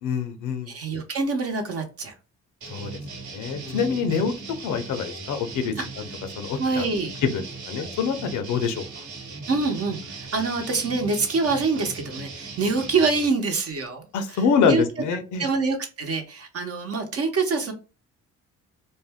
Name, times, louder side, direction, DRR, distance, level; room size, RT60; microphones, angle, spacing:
voice 1, 0.0-0.7 2.7-3.0 3.3-4.3 4.6-5.9 6.4-6.9 7.3-9.0 14.1-15.5, left 6 dB, 80° left, 8 dB, 0.7 m, -26 dB
voice 2, 0.7-2.1 3.6-4.3 6.6-7.1 7.8-7.9 9.5-14.1 14.7-14.8 15.4-17.7, right 4 dB, 50° right, 4 dB, 0.9 m, -25 dB
sound 1, 2.6-13.3, right 4 dB, 70° right, 1.1 m, -39 dB
2.6 x 2.1 x 3.4 m, 0.33 s
cardioid pair, 90°, 30 cm